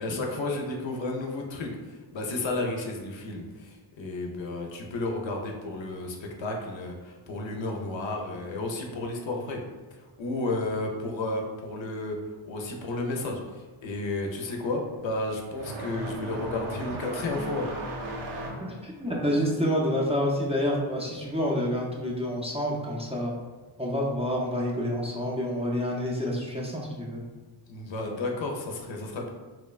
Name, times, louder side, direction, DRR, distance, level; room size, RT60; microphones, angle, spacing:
voice 1, 0.0-9.6 10.0-12.2 12.5-17.7 27.7-29.3, left 2 dB, 65° left, 1 dB, 0.6 m, -32 dB
sound 1, 13.6-21.9 22.2-23.3 24.2-24.3 25.2-25.3 27.0-27.1, right 1 dB, 75° right, 0.6 m, -38 dB
voice 2, 18.6-23.3 23.8-27.2, equal, 15° right, -4 dB, 0.4 m, -28 dB
3.0 x 2.1 x 2.3 m, 1.3 s
cardioid pair, 65°, 49 cm